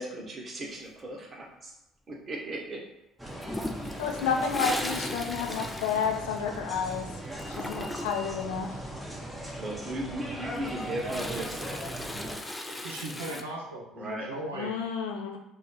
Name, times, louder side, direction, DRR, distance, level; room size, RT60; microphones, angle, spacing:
voice 1, 0.0-1.7 2.1-2.8 9.6-11.8 14.0-14.3, right 1 dB, 40° right, -1 dB, 1.0 m, -37 dB
sound 1, 3.2-12.4, right 1 dB, 5° right, 0.8 m, -39 dB
Toilet flush, 3.4-6.9 7.1-8.3 10.4-13.4, left 1 dB, 10° left, 0.4 m, -37 dB
voice 2, 4.0-7.1 7.5-8.8 14.5-15.4, left 6 dB, 75° left, 2 dB, 0.5 m, -30 dB
voice 3, 12.7-14.7, right 2 dB, 90° right, -1 dB, 0.7 m, -38 dB
3.0 x 2.4 x 3.9 m, 0.89 s
hypercardioid pair, 55°, 0 cm